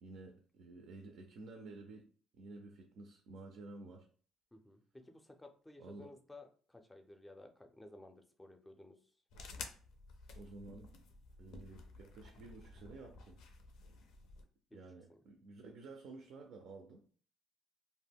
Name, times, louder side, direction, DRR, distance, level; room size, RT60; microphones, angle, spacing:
voice 1, 0.0-2.1 2.3-4.1 5.8-6.1 10.3-10.9 11.4-13.4 14.7-17.0, right 3 dB, 75° right, 3 dB, 0.4 m, -52 dB
voice 2, 4.5-9.0 14.7-14.8 15.1-15.2, left 2 dB, 10° left, 5 dB, 0.4 m, -56 dB
sound 1, 9.3-14.4, left 3 dB, 80° left, 0.4 m, -52 dB
2.1 x 2.1 x 3.5 m, 0.44 s
cardioid pair, 100°, 0 cm